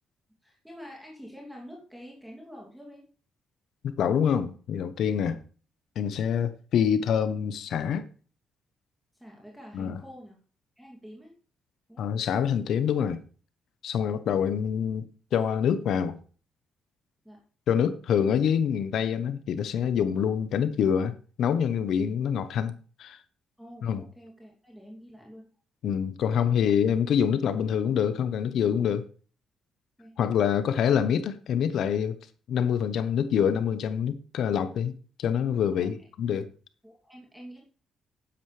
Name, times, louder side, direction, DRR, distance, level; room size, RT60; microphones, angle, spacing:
voice 1, 0.4-3.0 5.3-5.4 9.2-10.4 10.8-11.3 11.9-12.1 17.2-17.4 23.6-25.5 26.3-26.5 30.0-30.1 35.7-35.9 36.8-37.6, equal, 5° right, 2.8 m, -47 dB
voice 2, 3.8-5.4 6.0-8.1 9.7-10.0 12.0-13.2 13.8-16.2 17.7-22.7 23.0-23.2 23.8-24.0 25.8-29.1 30.2-32.2 32.5-34.9 35.2-36.5, left 8 dB, 70° left, 1.0 m, -26 dB
11.0 x 10.0 x 3.4 m
cardioid pair, 110°, 0 cm